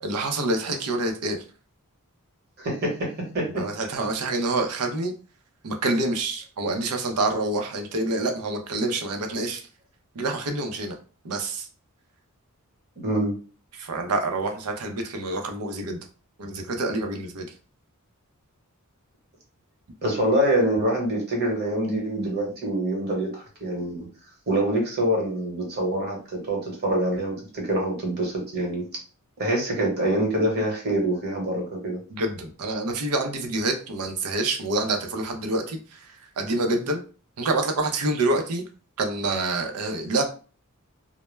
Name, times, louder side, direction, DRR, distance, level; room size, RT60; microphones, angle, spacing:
voice 1, 0.0-1.4 3.6-5.1 5.6-9.6 10.1-11.0 11.2-11.7 13.7-16.0 16.4-17.5 32.1-37.0 37.4-38.6 39.0-40.2, right 2 dB, 90° right, 5 dB, 0.5 m, -27 dB
voice 2, 2.6-3.7 13.0-13.3 20.0-24.1 24.5-28.8 29.4-32.0, right 1 dB, 50° right, -1 dB, 1.0 m, -25 dB
2.1 x 2.0 x 3.1 m, 0.37 s
head